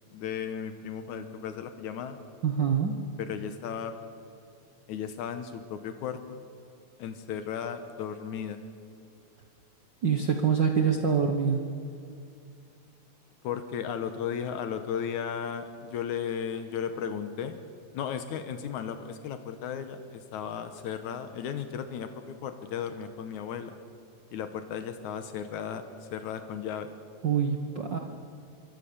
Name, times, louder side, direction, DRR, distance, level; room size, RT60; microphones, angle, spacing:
voice 1, 0.1-2.2 3.2-3.9 4.9-6.4 7.0-8.6 13.4-17.6 17.9-23.8 24.3-26.9, left 8 dB, 85° left, 8 dB, 2.5 m, -35 dB
voice 2, 2.4-3.0 10.0-11.7 27.2-28.0, right 6 dB, 50° right, 4 dB, 1.5 m, -25 dB
25.5 x 23.0 x 7.0 m, 2.5 s
omnidirectional pair, 3.4 m